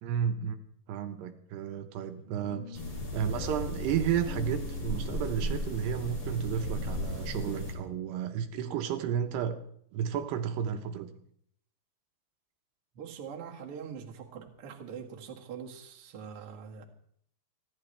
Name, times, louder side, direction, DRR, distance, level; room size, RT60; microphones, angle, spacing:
voice 1, 0.0-0.6 0.9-2.8 3.1-9.6 9.9-11.1, right 8 dB, 75° right, 7 dB, 2.9 m, -32 dB
sound 1, 2.4-9.5, left 5 dB, 55° left, 3.3 m, -49 dB
sound 2, 2.7-7.7, equal, 30° left, 3.8 m, -35 dB
voice 2, 12.9-16.9, right 7 dB, 45° right, 0 dB, 1.9 m, -43 dB
29.5 x 11.5 x 3.3 m, 0.64 s
omnidirectional pair, 5.0 m